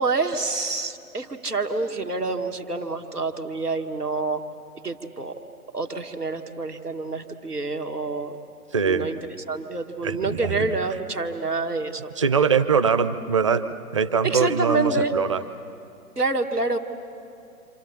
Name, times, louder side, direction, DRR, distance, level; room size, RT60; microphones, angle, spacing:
voice 1, 0.0-4.4 4.8-5.3 5.7-8.4 8.8-9.2 9.5-12.1 14.2-15.1 16.2-16.8, right 3 dB, 90° right, 4 dB, 1.7 m, -27 dB
voice 2, 8.7-9.1 10.0-10.8 12.2-15.4, right 6 dB, 20° right, 11 dB, 0.5 m, -22 dB
29.0 x 27.5 x 7.1 m, 2.6 s
figure-of-eight pair, 125°, 45 cm